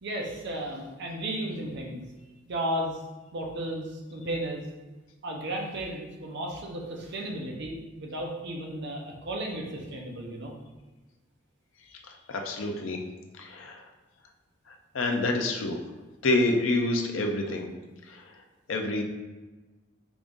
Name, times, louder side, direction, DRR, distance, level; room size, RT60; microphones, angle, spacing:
voice 1, 0.0-2.0 2.5-3.0 3.3-4.6 5.2-10.5, right 1 dB, 60° right, 0 dB, 0.7 m, -34 dB
voice 2, 12.3-13.0 13.4-13.8 14.9-15.8 16.2-17.7 18.7-19.0, left 2 dB, 85° left, 3 dB, 0.6 m, -27 dB
4.9 x 2.5 x 3.6 m, 1.2 s
head